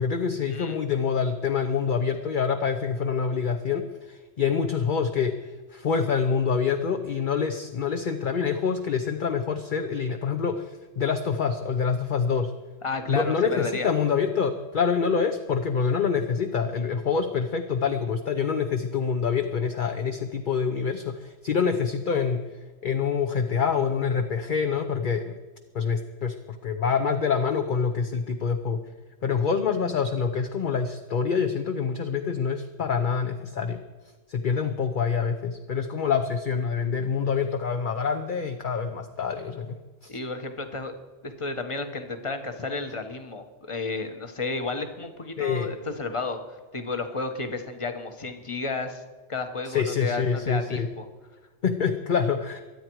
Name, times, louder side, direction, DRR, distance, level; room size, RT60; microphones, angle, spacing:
voice 1, 0.0-5.4 5.7-12.5 13.1-22.5 22.8-25.4 25.7-28.8 29.2-33.8 34.3-39.8 40.0-40.1 45.4-45.7 49.7-50.9 51.6-52.6, left 6 dB, 45° left, 6 dB, 0.9 m, -26 dB
voice 2, 12.8-13.9 40.1-41.0 41.2-49.0 49.3-51.0, left 3 dB, 25° left, 7 dB, 1.3 m, -32 dB
23.5 x 9.0 x 4.7 m, 1.2 s
omnidirectional pair, 1.3 m